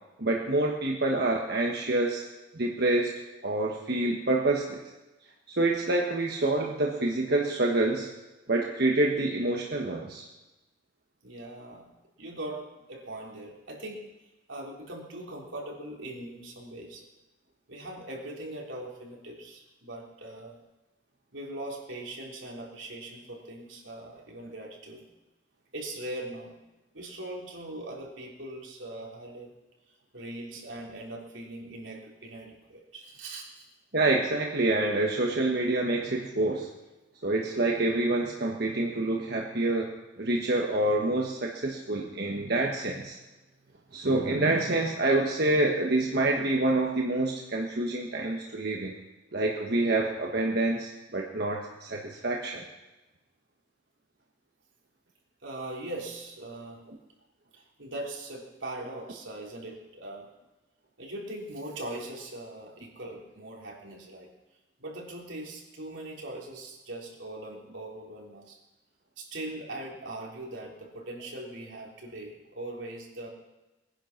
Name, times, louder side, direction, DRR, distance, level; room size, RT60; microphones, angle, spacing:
voice 1, 0.2-2.2 2.5-4.8 5.5-8.1 8.5-10.3 33.9-36.7 37.2-39.9 40.2-43.2 43.9-48.9 49.3-52.6, right 2 dB, 55° right, -1 dB, 1.4 m, -27 dB
voice 2, 11.2-11.9 12.2-12.6 12.9-14.0 14.5-17.0 17.7-20.6 21.3-25.0 25.7-26.6 26.9-29.5 30.1-33.7 55.4-56.8 57.5-60.3 61.0-64.3 64.8-68.6 69.2-73.3, right 1 dB, 85° right, -1 dB, 3.5 m, -40 dB
21.0 x 10.5 x 5.9 m, 1.1 s
head